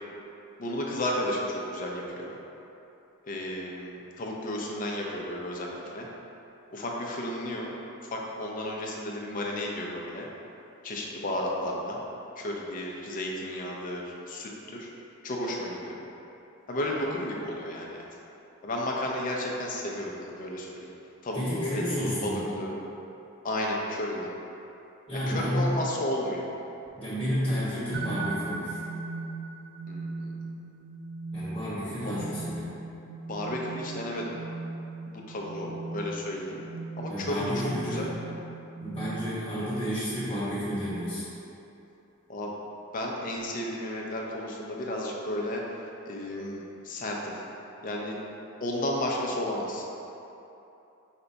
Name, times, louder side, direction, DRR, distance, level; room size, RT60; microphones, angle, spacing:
voice 1, 0.6-2.4 3.3-6.1 6.7-7.7 8.1-10.3 10.8-12.0 12.4-14.9 15.2-16.0 16.7-18.0 18.6-20.9 21.2-22.8 23.4-24.3 25.3-26.5 29.9-30.3 32.1-32.2 33.3-34.4 35.1-36.6 37.0-37.5 37.9-38.1 42.3-42.5 42.9-45.6 46.1-47.4 47.8-48.2 48.6-50.0, left 1 dB, 40° left, -2 dB, 0.5 m, -33 dB
voice 2, 21.3-22.4 25.1-25.7 27.0-28.8 31.3-32.7 37.1-38.0 38.8-41.2, equal, 20° left, -13 dB, 1.2 m, -31 dB
sound 1, 27.9-39.7, right 3 dB, 55° right, 0.3 m, -38 dB
5.1 x 2.3 x 3.9 m, 2.9 s
head